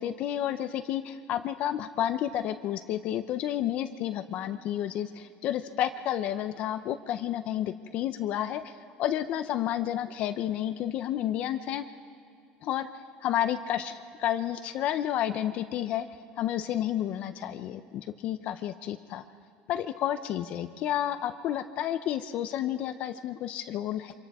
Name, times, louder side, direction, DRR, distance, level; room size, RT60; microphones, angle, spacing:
voice 1, 0.0-11.8 12.6-12.9 13.2-16.1 16.4-19.2 19.7-24.1, left 11 dB, 40° left, 10 dB, 0.6 m, -31 dB
28.5 x 26.0 x 3.6 m, 2.4 s
cardioid pair, 175°, 3 cm